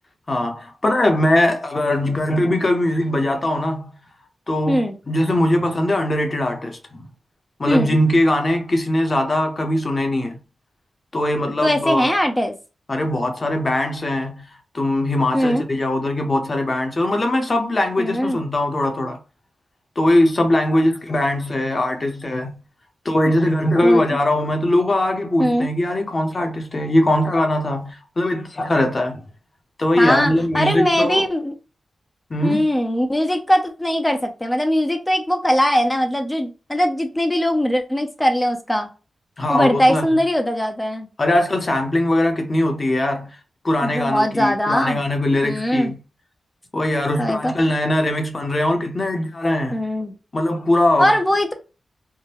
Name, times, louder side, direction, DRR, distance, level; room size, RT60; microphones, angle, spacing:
voice 1, 0.3-3.9 4.5-7.1 7.6-10.4 11.1-12.1 12.9-14.5 14.7-19.2 20.0-22.6 23.0-29.2 29.8-31.2 32.3-32.7 39.4-40.0 41.2-43.4 43.6-46.0 46.7-49.8 50.3-51.2, left 1 dB, 40° left, 0.9 m, -20 dB
voice 2, 7.7-8.0 11.6-12.5 15.3-15.6 18.0-18.4 23.8-24.0 25.4-25.7 30.0-31.5 32.4-38.9 39.5-41.1 43.8-45.0 45.4-45.9 47.2-47.5 49.7-50.1 51.0-51.5, equal, 15° left, 0.5 m, -20 dB
3.6 x 2.1 x 2.9 m
cardioid pair, 75°, 0 cm